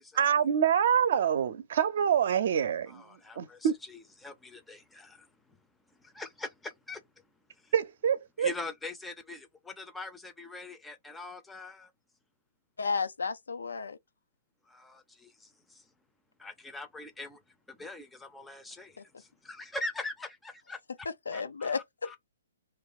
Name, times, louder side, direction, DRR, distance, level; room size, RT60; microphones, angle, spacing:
voice 1, 0.2-3.0 3.4-3.8 7.7-8.5, right 8 dB, 60° right, 0.6 m, -26 dB
voice 2, 2.9-5.6 5.9-7.3 7.5-7.7 8.4-11.9 14.6-15.9 16.4-17.4 17.7-21.1 21.3-22.2, left 2 dB, 5° left, 0.6 m, -43 dB
voice 3, 12.8-14.0 19.0-19.1 21.3-21.8, left 5 dB, 85° left, 0.5 m, -32 dB
2.5 x 2.4 x 3.9 m
hypercardioid pair, 140°, 0 cm